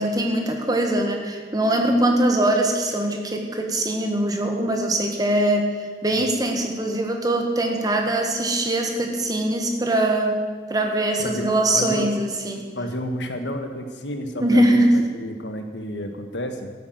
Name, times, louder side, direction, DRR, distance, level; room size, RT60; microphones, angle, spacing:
voice 1, 0.0-10.4 10.7-12.7 14.4-15.1, right 1 dB, 20° right, 3 dB, 1.6 m, -22 dB
voice 2, 11.2-12.1 12.7-16.7, equal, 90° left, 6 dB, 1.5 m, -31 dB
13.5 x 8.7 x 7.9 m, 1.5 s
head